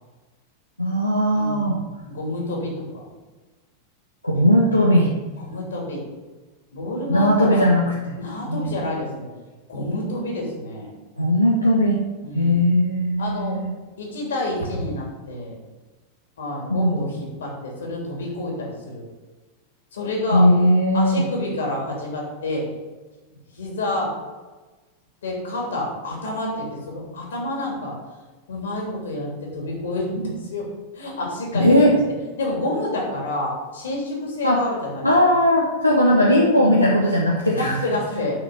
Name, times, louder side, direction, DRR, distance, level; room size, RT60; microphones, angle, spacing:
voice 1, 0.8-1.8 4.2-5.1 7.1-8.2 8.5-8.7 11.2-12.0 12.3-13.7 16.7-17.1 20.3-21.2 31.5-32.0 34.4-34.6 35.0-37.8, equal, 85° left, -2 dB, 1.1 m, -18 dB
voice 2, 1.3-1.8 2.1-3.1 5.5-6.0 6.7-7.7 8.2-9.3 9.7-10.9 12.2-12.6 13.2-13.6 14.0-15.6 16.4-19.1 19.9-20.5 20.9-22.7 23.3-24.1 25.2-28.0 28.5-30.7 30.9-32.0 32.4-35.1 36.0-36.3 37.5-38.4, left 1 dB, 65° left, -1 dB, 3.1 m, -28 dB
6.6 x 5.9 x 7.4 m, 1.3 s
figure-of-eight pair, 90°, 0 cm